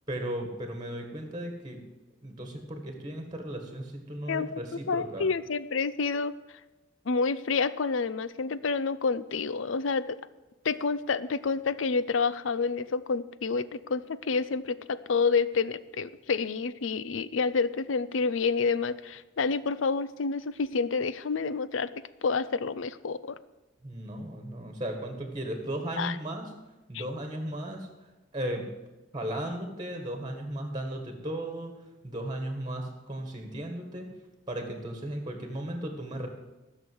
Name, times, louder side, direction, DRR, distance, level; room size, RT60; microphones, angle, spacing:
voice 1, 0.1-1.8 2.2-5.3 23.8-26.5 26.9-27.9 28.3-28.7 29.1-31.7 32.0-34.1 34.5-36.3, right 1 dB, 20° right, 5 dB, 1.7 m, -36 dB
voice 2, 4.3-6.3 7.1-10.2 10.6-21.9 22.2-23.4 26.0-26.2 26.9-27.0, left 4 dB, 75° left, 15 dB, 0.6 m, -29 dB
14.5 x 6.6 x 7.8 m, 1.1 s
head